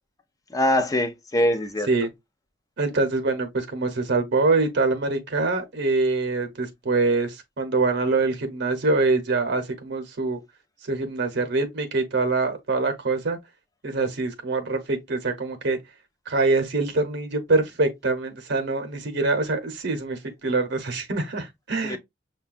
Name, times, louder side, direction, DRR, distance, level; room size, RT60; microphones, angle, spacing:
voice 1, 0.5-1.9 21.8-22.0, left 1 dB, 20° left, 0.5 m, -23 dB
voice 2, 2.8-10.4 10.8-13.4 13.8-15.8 16.3-22.0, right 3 dB, 60° right, 0.8 m, -24 dB
6.4 x 2.2 x 2.4 m
head